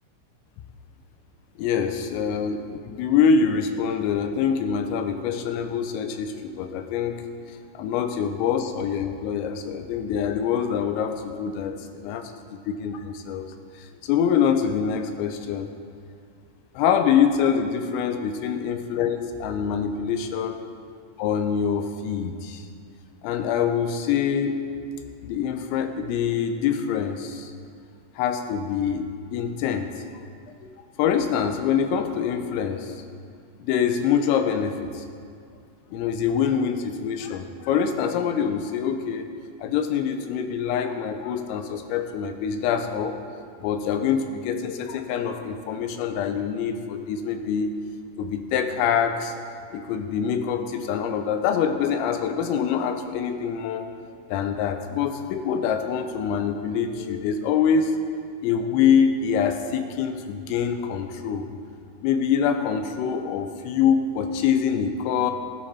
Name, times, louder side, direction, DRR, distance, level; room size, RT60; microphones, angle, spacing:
voice 1, 1.6-7.2 7.8-12.3 12.8-15.7 16.8-20.6 21.2-22.7 23.2-24.5 25.2-27.5 28.2-29.1 29.3-29.9 30.6-30.7 31.0-33.0 33.6-35.1 35.9-39.3 39.6-43.2 43.6-47.7 48.2-49.3 49.7-53.9 54.3-57.9 58.4-61.5 62.0-65.3, left 7 dB, 85° left, 7 dB, 3.5 m, -25 dB
19.0 x 10.0 x 4.3 m, 2.2 s
omnidirectional pair, 5.8 m